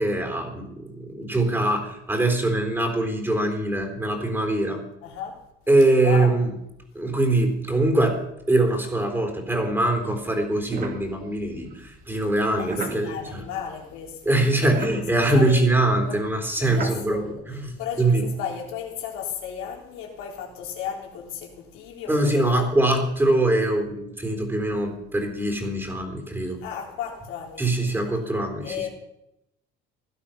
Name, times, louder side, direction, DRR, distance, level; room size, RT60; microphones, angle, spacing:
voice 1, 0.0-4.8 5.7-6.5 6.9-8.2 8.5-13.4 14.3-17.7 18.0-18.2 22.1-26.6 27.6-28.9, right 2 dB, 10° right, 3.9 m, -23 dB
voice 2, 5.0-5.4 6.0-6.4 12.5-14.3 14.6-15.6 16.1-16.2 16.6-17.5 17.8-23.0 26.4-28.1 28.6-28.9, left 8 dB, 85° left, 3.8 m, -35 dB
sound 1, 9.9-14.2 14.4-17.3, right 4 dB, 45° right, 2.5 m, -37 dB
17.0 x 11.5 x 5.9 m
cardioid pair, 140°, 21 cm